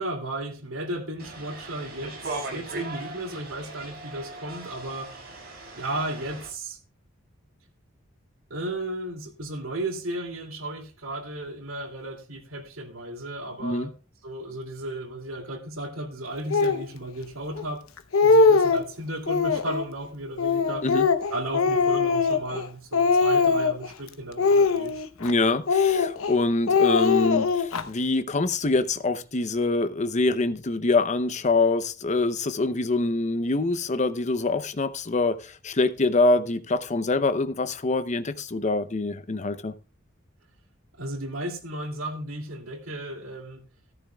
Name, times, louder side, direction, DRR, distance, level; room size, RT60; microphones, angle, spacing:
voice 1, 0.0-5.1 5.7-6.8 8.5-13.9 14.2-17.8 18.2-20.9 21.3-25.0 40.9-43.6, right 1 dB, 85° right, 2.7 m, -34 dB
sound 1, 1.2-6.5, right 3 dB, 50° right, 6.9 m, -39 dB
Speech, 16.5-16.8 17.6-17.7 18.0-18.9 19.3-19.9 20.4-22.7 22.9-23.9 24.4-25.3 25.7-26.3 26.7-27.8, left 4 dB, 90° left, 0.9 m, -21 dB
voice 2, 25.2-39.7, left 3 dB, 35° left, 0.7 m, -25 dB
14.0 x 14.0 x 2.3 m
head